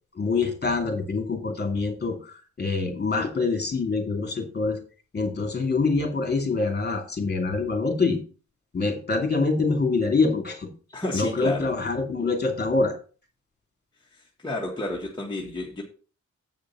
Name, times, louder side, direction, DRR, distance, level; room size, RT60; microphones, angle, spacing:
voice 1, 0.1-4.8 5.1-8.2 8.7-10.7 11.1-12.9, left 3 dB, 35° left, 4 dB, 2.6 m, -25 dB
voice 2, 10.9-11.7 14.4-15.8, left 2 dB, 15° left, -3 dB, 1.6 m, -31 dB
8.2 x 5.1 x 5.6 m, 0.38 s
wide cardioid pair, 110°, 30 cm